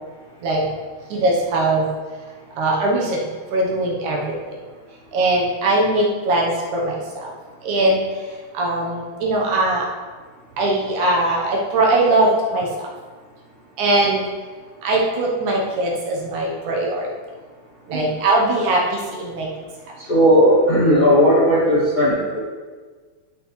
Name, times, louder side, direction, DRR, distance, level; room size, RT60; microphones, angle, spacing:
voice 1, 1.1-1.9 2.6-3.2 3.5-4.3 5.1-7.0 7.2-7.3 7.6-8.0 8.6-9.8 10.6-12.7 13.8-14.2 14.8-17.1 17.9-18.8 19.1-19.5, right 2 dB, 70° right, -2 dB, 1.9 m, -20 dB
voice 2, 20.0-22.4, equal, 25° left, -9 dB, 1.0 m, -16 dB
13.0 x 5.8 x 3.2 m, 1.5 s
omnidirectional pair, 4.6 m